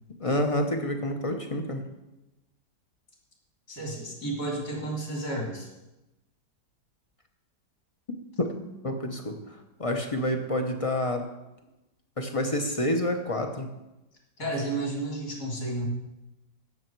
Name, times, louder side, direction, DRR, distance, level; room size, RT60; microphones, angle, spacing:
voice 1, 0.2-1.8 8.4-8.5 8.8-9.4 9.8-11.3 12.2-13.7, left 1 dB, 30° left, 4 dB, 0.7 m, -28 dB
voice 2, 3.7-5.7 14.4-15.9, right 2 dB, 60° left, -3 dB, 3.7 m, -32 dB
15.5 x 6.5 x 4.6 m, 0.98 s
omnidirectional pair, 1.9 m